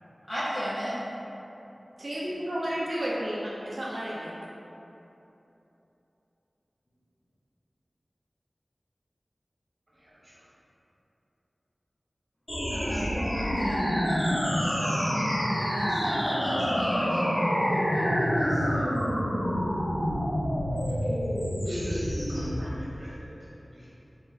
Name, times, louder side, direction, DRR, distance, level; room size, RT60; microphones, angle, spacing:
voice 1, 0.3-0.9 12.7-14.0 14.6-18.8, equal, 40° left, -12 dB, 0.8 m, -36 dB
voice 2, 2.0-4.4, equal, 60° right, -6 dB, 0.4 m, -32 dB
voice 3, 9.9-10.5 12.8-13.1 20.9-21.2 21.6-23.3 23.7-23.9, equal, 40° right, -9 dB, 1.1 m, -45 dB
sound 1, 12.5-22.5, equal, 80° left, 1.3 m, -27 dB
2.9 x 2.4 x 3.9 m, 3.0 s
wide cardioid pair, 40°, 0 cm